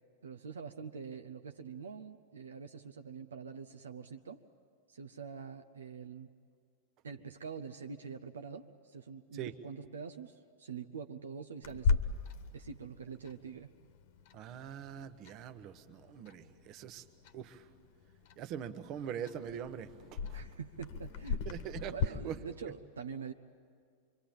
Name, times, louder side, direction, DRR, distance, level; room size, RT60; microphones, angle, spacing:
voice 1, 0.2-4.4 4.9-6.3 7.0-12.1 12.5-13.7 20.3-23.3, right 6 dB, 70° right, 7 dB, 0.8 m, -45 dB
Clock, 11.6-22.1, left 5 dB, 50° left, 1.4 m, -38 dB
voice 2, 14.3-17.0 17.3-17.7 18.4-20.4 21.4-22.4, right 9 dB, 40° right, 12 dB, 1.2 m, -43 dB
25.5 x 24.0 x 9.1 m, 2.1 s
figure-of-eight pair, 90°, 0 cm